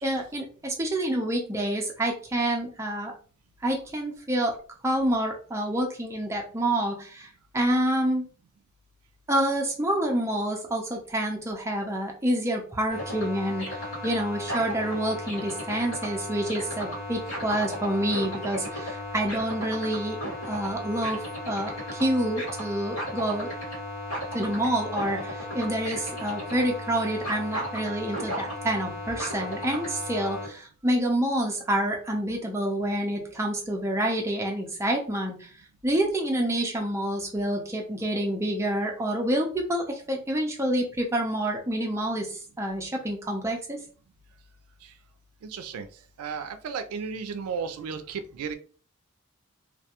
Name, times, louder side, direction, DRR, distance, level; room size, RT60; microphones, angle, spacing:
voice 1, 0.0-3.1 3.6-4.6 4.8-7.3 7.5-8.3 9.3-20.2 20.5-23.5 24.3-35.5 35.8-43.8, right 1 dB, 15° right, 1 dB, 0.4 m, -28 dB
sound 1, 12.9-30.5, left 1 dB, 75° left, 1.1 m, -35 dB
voice 2, 45.5-45.9 46.2-48.5, right 6 dB, 90° right, 10 dB, 0.3 m, -34 dB
2.3 x 2.2 x 2.8 m, 0.41 s
head